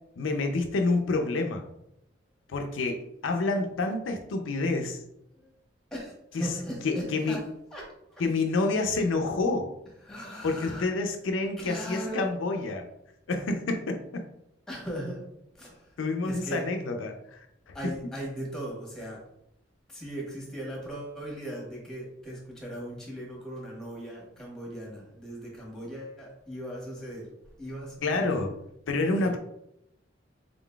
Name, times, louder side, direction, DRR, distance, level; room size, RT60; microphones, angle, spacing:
voice 1, 0.2-1.7 2.5-5.0 6.3-6.5 6.8-7.4 8.2-9.7 10.4-12.9 13.3-14.2 16.0-17.9 28.0-28.6 28.9-29.4, left 3 dB, 80° left, 4 dB, 0.4 m, -28 dB
voice 2, 5.9-7.4 7.7-8.2 10.0-10.9 11.6-12.3 14.7-15.2 15.5-16.7 17.7-19.2 19.9-27.3 27.6-28.3 29.1-29.4, right 1 dB, 5° left, -4 dB, 1.2 m, -38 dB
3.8 x 3.8 x 2.2 m, 0.80 s
head